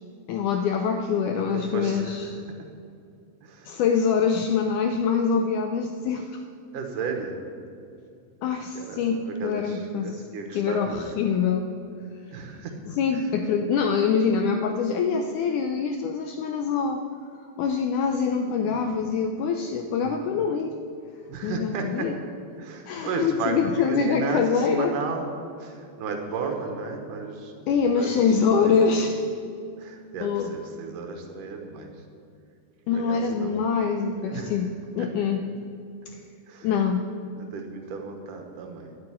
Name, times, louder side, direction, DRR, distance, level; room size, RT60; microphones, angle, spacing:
voice 1, 0.3-2.4 3.7-6.4 8.4-10.2 10.5-11.7 12.9-17.0 17.4-20.8 21.4-22.2 22.9-24.9 27.7-29.2 30.2-30.6 32.9-35.4 36.1-36.2 36.6-37.1, left 6 dB, 85° left, 6 dB, 1.8 m, -24 dB
voice 2, 1.3-2.3 3.4-3.7 6.7-7.4 8.8-11.0 12.3-12.8 13.1-13.3 18.8-19.0 21.3-22.1 22.6-25.3 25.6-27.5 27.9-28.2 28.5-28.7 29.8-31.9 32.9-33.7 34.2-34.6 35.0-35.1 36.5-36.7 37.3-38.9, right 5 dB, 65° right, 4 dB, 2.5 m, -34 dB
10.5 x 7.8 x 9.6 m, 2.5 s
omnidirectional pair, 4.2 m